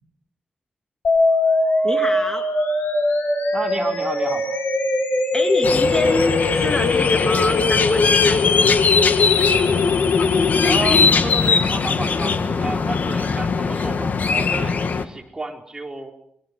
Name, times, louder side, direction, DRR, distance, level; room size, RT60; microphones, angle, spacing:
sound 1, 1.0-11.0, left 3 dB, 85° left, 5.4 m, -21 dB
voice 1, 1.8-2.5 5.3-8.6, left 2 dB, 20° left, 5 dB, 2.0 m, -26 dB
voice 2, 3.5-4.5 10.6-16.1, right 2 dB, 20° right, 1 dB, 4.3 m, -31 dB
sound 2, 5.6-15.0, left 5 dB, 60° left, 1.9 m, -20 dB
28.5 x 23.5 x 6.7 m, 0.75 s
wide cardioid pair, 120°, 3 cm